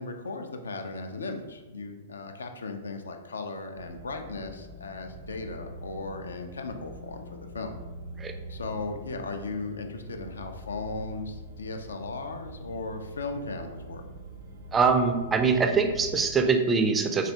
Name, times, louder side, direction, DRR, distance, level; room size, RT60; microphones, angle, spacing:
voice 1, 0.0-7.7 8.5-14.0, left 3 dB, 75° left, 5 dB, 0.3 m, -37 dB
sound 1, 3.8-16.2, right 1 dB, 65° right, 0.5 m, -44 dB
voice 2, 14.7-17.3, right 5 dB, 15° right, 5 dB, 0.3 m, -23 dB
3.2 x 2.3 x 2.8 m, 1.2 s
figure-of-eight pair, 105°, 0 cm